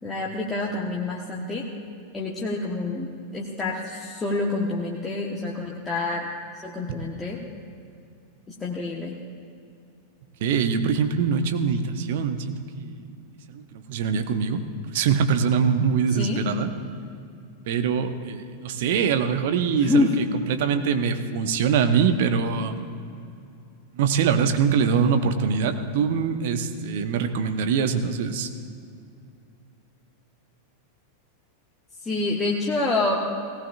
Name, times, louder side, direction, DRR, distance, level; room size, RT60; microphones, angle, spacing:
voice 1, 0.0-1.6 2.1-3.1 3.3-6.3 6.6-7.4 8.5-9.2 16.1-16.4 19.8-20.1 32.0-33.3, left 3 dB, 15° left, -3 dB, 1.3 m, -27 dB
voice 2, 10.4-13.0 13.5-16.7 17.7-22.8 23.9-28.5, right 6 dB, 50° right, 8 dB, 0.9 m, -23 dB
18.0 x 17.0 x 2.5 m, 2.5 s
figure-of-eight pair, 90°, 0 cm